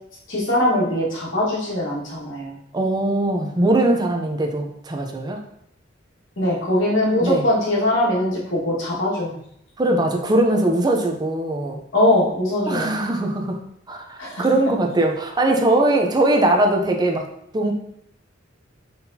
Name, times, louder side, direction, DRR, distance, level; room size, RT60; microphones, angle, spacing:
voice 1, 0.3-2.6 6.4-9.4 11.9-12.9 14.2-14.4, left 1 dB, 75° left, -6 dB, 1.7 m, -21 dB
voice 2, 2.7-5.4 7.2-7.4 9.8-11.8 12.7-13.6 13.9-17.3 17.5-17.7, right 1 dB, 20° right, 2 dB, 0.6 m, -20 dB
4.1 x 4.0 x 2.8 m, 0.73 s
head